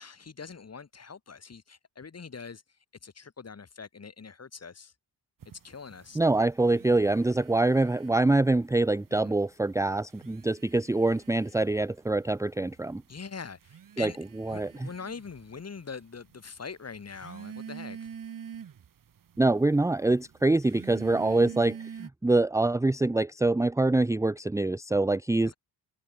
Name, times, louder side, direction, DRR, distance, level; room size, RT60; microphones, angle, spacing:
voice 1, 0.0-2.6 3.0-4.9 5.6-6.2 9.1-9.4 13.1-14.2 14.5-18.1 21.2-21.5, left 5 dB, 35° left, 8.0 m, -43 dB
sound 1, 5.4-8.5 8.8-9.5 10.0-22.1, right 8 dB, 50° right, 2.6 m, -46 dB
voice 2, 6.1-13.0 14.0-14.1 14.4-14.9 19.4-25.5, right 2 dB, 5° right, 0.7 m, -25 dB
cardioid pair, 110°, 42 cm